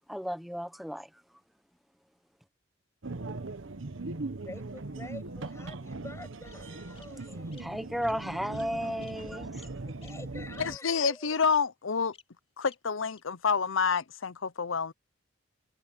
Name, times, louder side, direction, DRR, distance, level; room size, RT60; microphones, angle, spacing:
voice 1, 0.1-1.1 7.6-9.7, equal, ahead, 1.2 m, -34 dB
sound 1, 3.0-10.8, right 2 dB, 75° right, 1.1 m, -40 dB
voice 2, 4.4-7.9 9.9-11.3, left 1 dB, 15° left, 7.2 m, -47 dB
Bird vocalization bird call bird song, 5.0-5.8 6.5-6.6 7.0-7.1 7.5-7.6 8.0-8.2 8.5-8.7 9.0-9.1 9.6-9.7 10.0-10.1 10.5-10.6 11.0-11.1 11.5-11.6 12.1-12.2 12.7-12.8 13.1-13.2, left 5 dB, 30° left, 4.0 m, -55 dB
voice 3, 10.6-12.1 12.6-14.9, left 5 dB, 80° left, 0.7 m, -28 dB
head